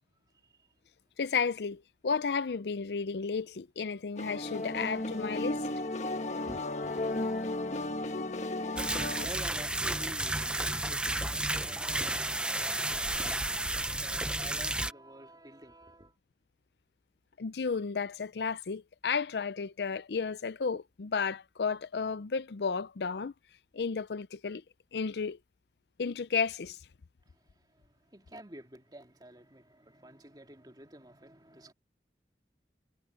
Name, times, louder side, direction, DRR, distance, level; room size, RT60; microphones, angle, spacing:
voice 1, 0.4-0.7 6.1-7.1 9.0-16.1 27.3-31.7, right 1 dB, 25° right, 2.7 m, -50 dB
voice 2, 1.2-5.7 17.4-23.3 23.7-24.6 24.9-25.4 26.0-26.8, left 5 dB, 75° left, 0.5 m, -33 dB
sound 1, 4.2-9.3, left 2 dB, 40° left, 1.3 m, -34 dB
sound 2, 8.8-14.9, right 2 dB, 5° right, 0.7 m, -32 dB
head